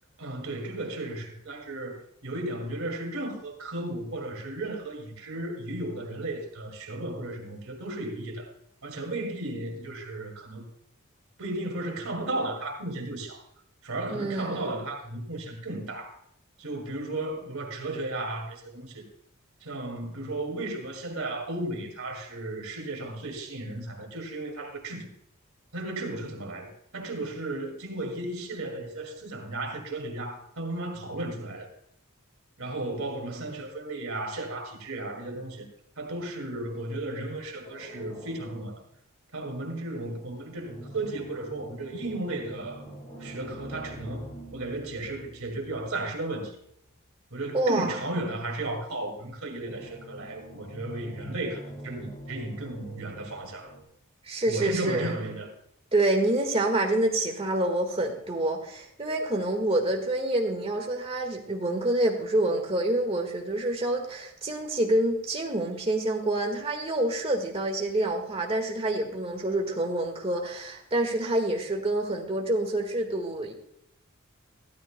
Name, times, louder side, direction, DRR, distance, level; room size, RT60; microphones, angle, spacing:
voice 1, 0.2-8.5 8.8-10.7 11.4-13.4 13.8-16.2 16.6-19.1 19.6-25.1 25.7-31.7 32.6-35.7 36.0-38.8 39.3-42.9 43.2-46.6 47.3-53.7 54.5-55.5, right 2 dB, 75° right, 2.3 m, -34 dB
voice 2, 14.1-14.7 47.5-48.0 54.3-55.1 55.9-73.5, right 1 dB, 25° right, 1.7 m, -27 dB
sound 1, 37.6-38.9 40.0-46.2 49.6-53.8, right 1 dB, 25° left, 3.4 m, -45 dB
15.0 x 12.5 x 2.2 m
head